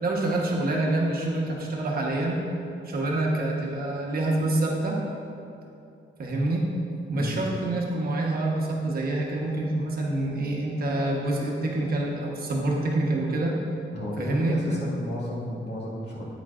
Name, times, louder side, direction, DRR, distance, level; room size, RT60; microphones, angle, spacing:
voice 1, 0.0-2.4 2.8-5.0 6.2-6.7 7.1-13.5 14.2-14.7, right 2 dB, 45° right, -2 dB, 1.1 m, -26 dB
voice 2, 13.9-16.2, left 1 dB, 55° left, -5 dB, 1.9 m, -33 dB
9.5 x 9.1 x 2.5 m, 2.6 s
wide cardioid pair, 180°, 21 cm